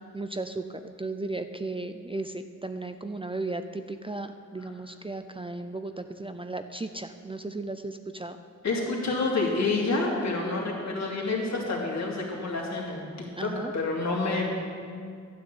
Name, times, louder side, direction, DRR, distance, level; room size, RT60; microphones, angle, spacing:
voice 1, 0.0-8.4 13.4-13.7, right 2 dB, 15° right, 8 dB, 0.5 m, -35 dB
voice 2, 8.6-14.4, left 3 dB, 60° left, -2 dB, 2.9 m, -28 dB
12.5 x 6.4 x 8.7 m, 2.2 s
cardioid pair, 80°, 31 cm